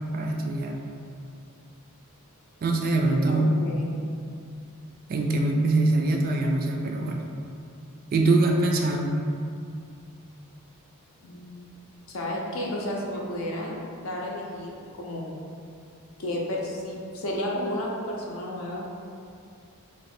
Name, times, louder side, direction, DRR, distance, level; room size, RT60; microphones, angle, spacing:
voice 1, 0.1-0.8 2.6-3.6 5.1-7.3 8.1-9.2, right 2 dB, 40° right, 1 dB, 0.3 m, -23 dB
voice 2, 3.3-3.9 11.2-11.6 12.1-13.8 14.0-15.3 16.2-18.8, left 1 dB, 65° left, -2 dB, 0.6 m, -32 dB
3.1 x 2.1 x 4.2 m, 2.4 s
head